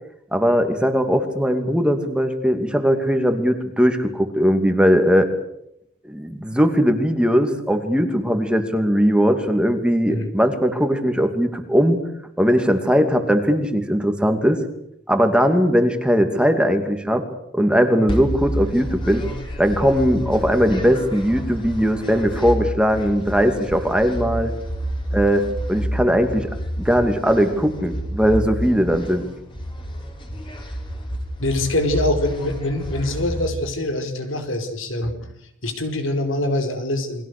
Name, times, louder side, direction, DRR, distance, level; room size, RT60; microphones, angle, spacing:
voice 1, 0.3-5.3 6.0-12.0 12.4-14.6 15.1-17.3 17.5-19.2 19.6-24.5 25.1-26.5 26.8-29.2, equal, 5° right, 6 dB, 2.5 m, -19 dB
sound 1, 18.1-33.5, equal, 25° left, 4.8 m, -29 dB
voice 2, 31.4-35.1 35.6-37.2, left 1 dB, 75° left, 7 dB, 4.9 m, -24 dB
29.5 x 23.5 x 6.8 m, 0.77 s
head